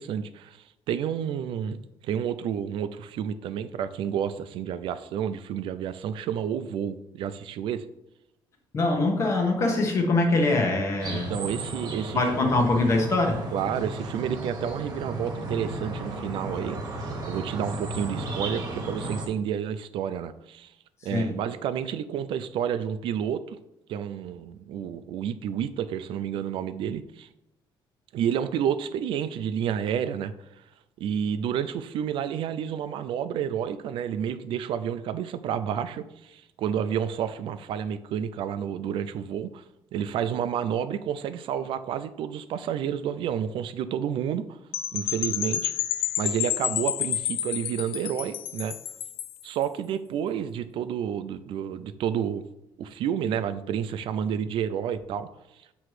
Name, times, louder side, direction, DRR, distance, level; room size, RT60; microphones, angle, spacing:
voice 1, 0.0-7.8 11.1-12.5 13.5-16.8 17.3-20.7 21.0-23.6 23.9-27.3 28.1-30.3 31.0-39.6 39.9-44.6 44.9-45.7 46.2-48.8 49.4-52.4 52.8-55.3, right 8 dB, 70° right, 12 dB, 0.4 m, -30 dB
voice 2, 8.7-11.3 12.1-13.4 21.1-21.3, left 2 dB, 30° left, 2 dB, 1.1 m, -23 dB
sound 1, 11.0-19.3, right 2 dB, 45° right, 1.3 m, -34 dB
Percussion / Wind chime, 44.7-49.4, left 12 dB, 90° left, 0.4 m, -30 dB
7.6 x 3.1 x 4.8 m, 0.88 s
cardioid pair, 175°, 9 cm